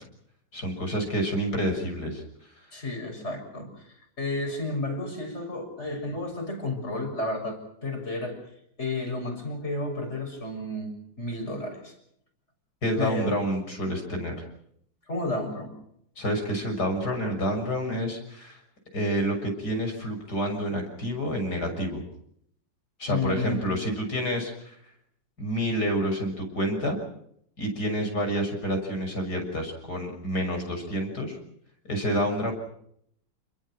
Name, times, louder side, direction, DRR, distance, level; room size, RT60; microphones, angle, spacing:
voice 1, 0.5-2.2 12.8-14.4 16.2-18.6 18.9-22.0 23.0-24.8 25.4-27.0 27.6-31.4 31.9-32.5, equal, 50° left, 3 dB, 7.3 m, -28 dB
voice 2, 2.7-8.4 8.8-11.9 13.0-13.3 15.1-15.7 23.1-23.7, left 2 dB, 30° left, 3 dB, 7.3 m, -32 dB
29.5 x 21.5 x 6.4 m, 0.70 s
omnidirectional pair, 2.2 m